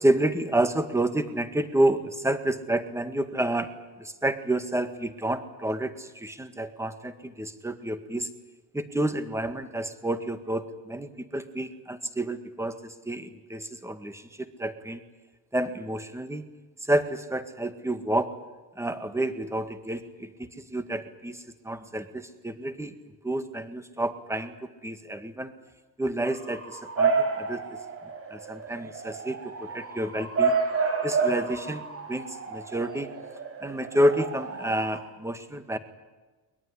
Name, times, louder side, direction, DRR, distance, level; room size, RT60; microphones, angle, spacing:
voice 1, 0.0-3.7 4.0-8.3 8.7-15.0 15.5-16.5 16.8-18.4 18.8-22.9 23.2-24.5 24.8-25.5 26.0-27.8 28.3-30.6 31.0-33.1 33.6-35.8, right 1 dB, 5° right, 8 dB, 1.8 m, -29 dB
Bark / Motor vehicle (road) / Siren, 26.2-35.0, right 5 dB, 35° right, 5.5 m, -30 dB
22.0 x 21.5 x 9.9 m, 1.2 s
cardioid pair, 130°, 39 cm